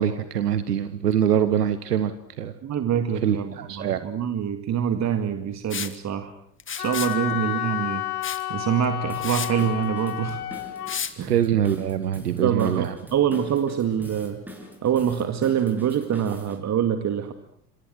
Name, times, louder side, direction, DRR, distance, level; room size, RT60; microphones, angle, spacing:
voice 1, 0.0-2.1 2.4-2.5 3.2-4.0 11.3-12.9, right 9 dB, 80° right, 13 dB, 1.4 m, -23 dB
voice 2, 2.6-6.3 6.8-8.0 8.5-10.5 11.2-11.3 12.3-14.4 14.8-17.3, right 9 dB, 35° right, 8 dB, 2.1 m, -25 dB
Liquid, 5.7-6.0 6.6-7.2 8.2-8.4 8.8-8.9 9.2-9.5 10.9-11.1, left 7 dB, 25° left, 2.3 m, -31 dB
Wind instrument woodwind instrument, 6.8-11.0, left 15 dB, 70° left, 1.7 m, -31 dB
Drum kit / Drum, 9.1-16.6, equal, 5° right, 6.7 m, -44 dB
27.0 x 27.0 x 6.3 m, 0.66 s
figure-of-eight pair, 70°, 47 cm